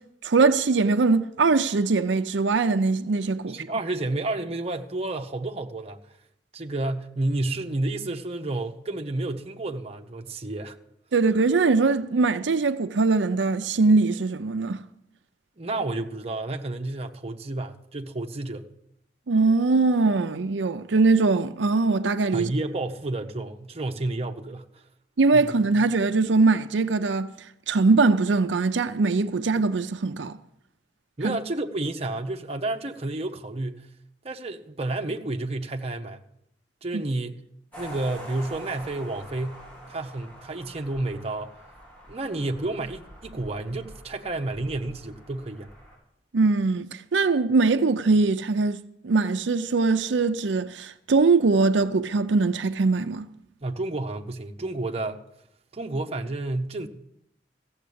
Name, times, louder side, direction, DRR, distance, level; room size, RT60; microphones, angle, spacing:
voice 1, 0.2-3.6 11.1-14.8 19.3-22.5 25.2-27.3 27.7-30.4 31.2-31.4 36.9-37.0 46.3-48.8 49.0-53.3, right 3 dB, 85° right, 0.6 m, -22 dB
voice 2, 3.5-6.0 6.5-10.8 15.6-18.7 22.3-24.8 25.3-25.5 31.2-33.9 34.2-36.2 36.8-37.3 37.8-41.5 42.1-45.7 53.6-55.2 55.7-56.9, right 2 dB, 35° right, 0.9 m, -30 dB
sound 1, 37.7-46.0, equal, 10° left, 5.0 m, -45 dB
15.0 x 7.3 x 8.5 m
head